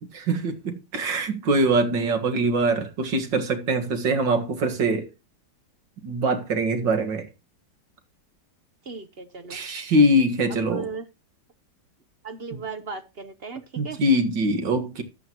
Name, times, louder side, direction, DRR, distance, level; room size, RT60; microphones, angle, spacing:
voice 1, 0.3-5.1 6.0-7.3 9.5-10.9 13.8-15.0, right 1 dB, 70° right, 2.4 m, -23 dB
voice 2, 8.8-9.6 10.5-11.1 12.2-14.0, right 5 dB, 45° right, 0.9 m, -36 dB
13.0 x 9.4 x 3.0 m
omnidirectional pair, 2.0 m